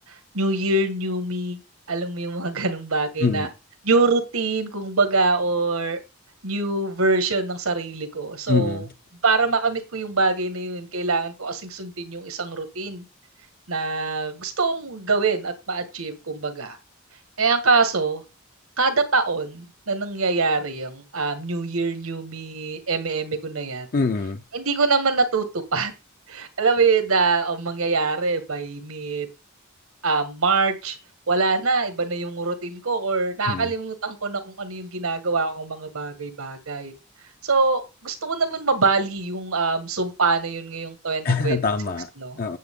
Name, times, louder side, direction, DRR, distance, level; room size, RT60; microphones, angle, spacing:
voice 1, 0.3-1.6 1.9-3.5 3.8-6.0 6.4-8.8 9.2-13.0 13.7-16.8 17.4-18.2 18.8-23.9 24.5-25.9 26.3-29.3 30.0-31.0 31.3-36.9 37.4-41.6 42.2-42.4, right 3 dB, 80° right, 1.7 m, -24 dB
voice 2, 3.2-3.5 8.5-8.9 23.9-24.4 33.5-33.7 41.2-42.1 42.4-42.6, left 4 dB, 45° left, 0.5 m, -24 dB
9.4 x 7.9 x 3.7 m
head